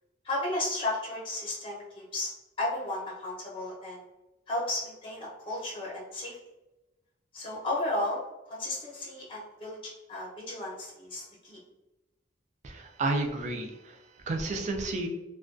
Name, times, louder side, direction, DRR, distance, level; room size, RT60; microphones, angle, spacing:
voice 1, 0.2-2.3 2.6-4.0 4.5-6.4 7.3-8.2 8.5-9.8 10.1-11.6, left 1 dB, 30° left, -5 dB, 0.7 m, -33 dB
voice 2, 12.6-14.0 14.3-15.1, right 2 dB, 40° right, 4 dB, 0.3 m, -31 dB
2.2 x 2.2 x 2.4 m, 1.0 s
head